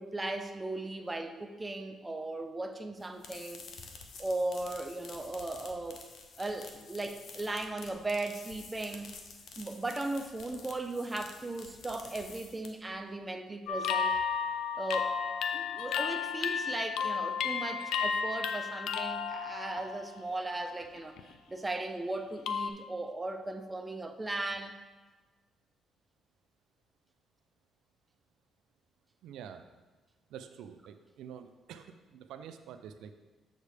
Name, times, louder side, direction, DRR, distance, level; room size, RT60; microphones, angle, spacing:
voice 1, 0.0-3.6 4.2-6.0 6.4-9.2 9.6-14.2 14.8-15.2 15.5-21.2 21.5-24.8, right 2 dB, 20° right, 6 dB, 0.7 m, -37 dB
sound 1, 3.0-12.9, left 4 dB, 65° left, 0.9 m, -50 dB
sound 2, 13.7-20.5 21.0-21.3 22.5-22.7, left 6 dB, 80° left, 0.5 m, -33 dB
voice 2, 29.2-29.6 30.3-33.1, right 8 dB, 85° right, 8 dB, 0.4 m, -47 dB
7.3 x 6.5 x 3.3 m, 1.3 s
cardioid pair, 90°, 0 cm